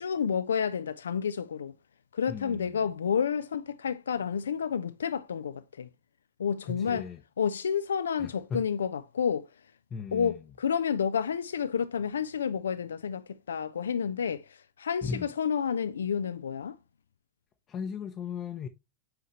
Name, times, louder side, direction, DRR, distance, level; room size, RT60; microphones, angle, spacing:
voice 1, 0.0-1.7 2.1-5.9 6.4-7.1 7.4-9.5 10.1-16.8, left 7 dB, 70° left, 0.3 m, -30 dB
voice 2, 2.3-2.9 6.6-7.2 8.2-8.6 9.9-10.4 15.0-15.3 17.7-18.7, left 5 dB, 25° left, 0.7 m, -37 dB
8.0 x 4.8 x 3.0 m
figure-of-eight pair, 90°, 0 cm